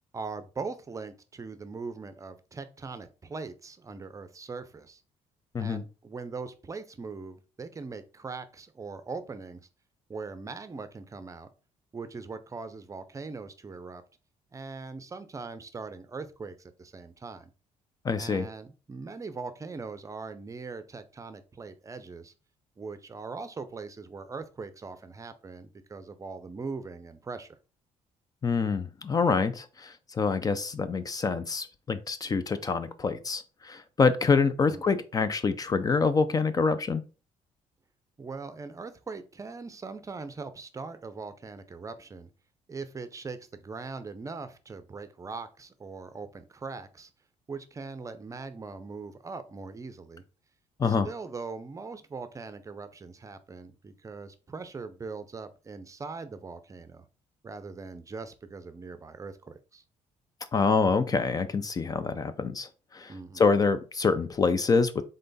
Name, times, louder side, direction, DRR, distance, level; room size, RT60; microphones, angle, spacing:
voice 1, 0.1-5.0 5.6-9.7 10.1-11.5 11.9-14.0 14.5-17.5 18.2-22.3 22.8-27.6 34.7-35.0 38.2-42.3 42.7-47.1 47.5-50.2 50.8-57.0 57.4-59.8 63.1-63.5, right 4 dB, 25° right, 11 dB, 0.6 m, -41 dB
voice 2, 18.0-18.5 28.4-37.0 50.8-51.1 60.5-65.0, left 4 dB, 30° left, 12 dB, 0.4 m, -26 dB
3.8 x 3.3 x 4.0 m, 0.34 s
cardioid pair, 105°, 13 cm